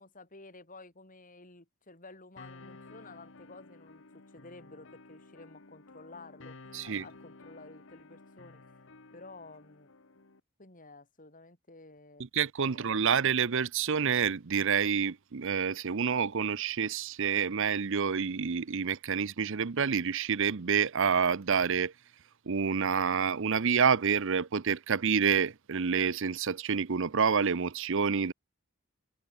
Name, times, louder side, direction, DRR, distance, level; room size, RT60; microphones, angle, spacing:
voice 1, 0.0-6.6 6.8-8.6 9.1-9.9 10.6-12.3 12.7-13.1, left 3 dB, 35° left, 4.2 m, -52 dB
sound 1, 2.4-10.4, left 3 dB, 60° left, 1.4 m, -53 dB
voice 2, 6.7-7.0 12.3-21.9 22.5-28.3, right 6 dB, 60° right, 0.7 m, -28 dB
head